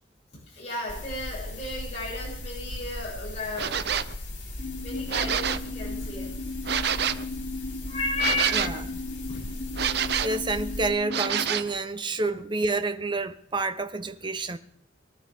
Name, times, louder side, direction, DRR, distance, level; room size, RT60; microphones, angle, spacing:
voice 1, 0.5-3.8 4.8-6.3 7.8-8.8 9.3-9.4, left 2 dB, 35° left, 7.0 m, -33 dB
sound 1, 0.9-10.9, left 1 dB, 85° left, 4.1 m, -38 dB
sound 2, 3.6-4.1 5.0-5.7 6.6-7.2 8.2-8.8 9.7-10.4 11.1-11.7, right 8 dB, 60° right, 0.7 m, -27 dB
sound 3, 4.6-11.5, left 3 dB, 55° left, 5.9 m, -37 dB
voice 2, 9.9-14.6, right 3 dB, 25° right, 0.8 m, -29 dB
23.0 x 13.0 x 3.7 m
head